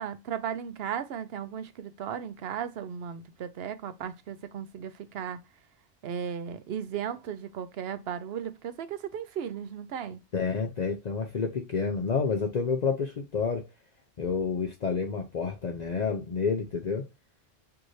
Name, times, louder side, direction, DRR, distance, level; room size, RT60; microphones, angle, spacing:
voice 1, 0.0-5.4 6.0-10.2, right 8 dB, 75° right, 0.9 m, -36 dB
voice 2, 10.3-13.7 14.2-17.1, left 5 dB, 50° left, 0.7 m, -29 dB
4.6 x 2.6 x 3.0 m
omnidirectional pair, 1.1 m